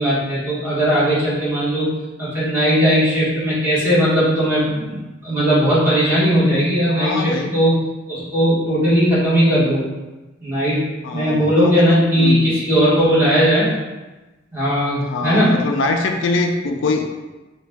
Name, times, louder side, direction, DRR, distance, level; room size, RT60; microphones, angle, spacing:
voice 1, 0.0-1.9 2.2-7.8 8.1-9.8 10.4-10.8 11.1-13.7 14.5-15.5, equal, 10° right, -10 dB, 1.3 m, -17 dB
voice 2, 6.9-7.6 11.0-12.5 15.1-17.0, left 3 dB, 80° left, 4 dB, 0.4 m, -23 dB
3.8 x 2.2 x 3.4 m, 1.1 s
head